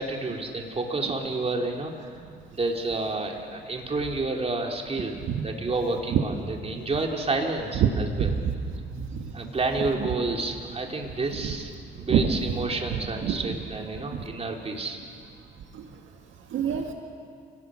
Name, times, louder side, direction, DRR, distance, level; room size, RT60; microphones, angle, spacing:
voice 1, 0.0-2.1 2.5-5.2 5.4-8.3 9.3-15.0, right 3 dB, 30° right, 1 dB, 3.3 m, -30 dB
voice 2, 12.9-13.4 16.5-16.9, right 10 dB, 75° right, 3 dB, 1.9 m, -24 dB
28.5 x 18.5 x 6.3 m, 2.2 s
cardioid pair, 90°, 20 cm